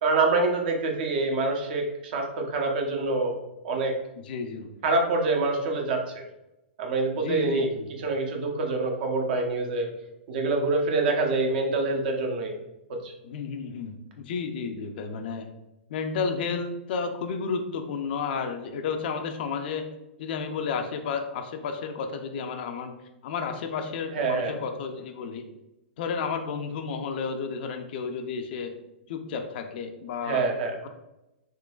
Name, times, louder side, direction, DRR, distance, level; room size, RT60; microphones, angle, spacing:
voice 1, 0.0-3.4 3.6-3.9 4.8-6.2 6.8-9.9 10.3-12.5 12.9-13.1 24.1-24.5 30.2-30.8, right 3 dB, 55° right, 2 dB, 0.8 m, -26 dB
voice 2, 4.2-4.7 7.1-7.9 13.2-15.5 15.9-19.9 20.2-22.9 23.2-25.4 26.0-28.7 29.1-30.5, left 5 dB, 60° left, 5 dB, 0.5 m, -32 dB
3.7 x 2.9 x 2.3 m, 0.93 s
hypercardioid pair, 120°, 6 cm